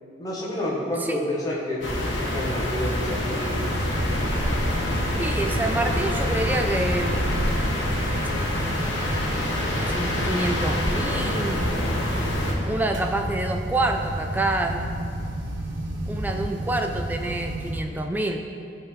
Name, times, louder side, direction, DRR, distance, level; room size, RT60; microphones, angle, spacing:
voice 1, 0.2-1.8 2.1-3.6, left 1 dB, 20° left, -5 dB, 1.0 m, -29 dB
sound 1, 1.8-12.5, left 1 dB, 90° left, 1.1 m, -26 dB
sound 2, 3.5-17.8, right 1 dB, 80° right, 0.9 m, -31 dB
voice 2, 5.2-7.3 9.9-11.8 12.6-14.9 16.1-18.4, right 2 dB, 10° right, 4 dB, 0.4 m, -27 dB
11.5 x 3.9 x 3.2 m, 2.7 s
head